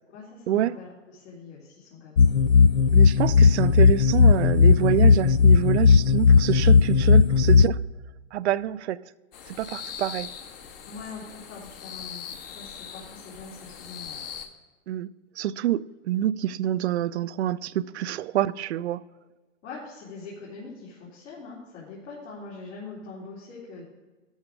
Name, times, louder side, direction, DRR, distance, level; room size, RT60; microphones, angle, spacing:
voice 1, 0.1-2.3 10.9-14.2 19.6-23.8, left 4 dB, 70° left, 3.8 m, -43 dB
sound 1, 2.2-7.7, left 5 dB, 85° left, 0.9 m, -17 dB
voice 2, 2.9-7.8 8.3-9.0 9.5-10.3 14.9-15.1 15.4-19.0, right 12 dB, 60° right, 0.5 m, -26 dB
sound 2, 9.3-14.5, left 8 dB, 45° left, 1.4 m, -41 dB
12.5 x 6.5 x 4.9 m
hypercardioid pair, 135°, 39 cm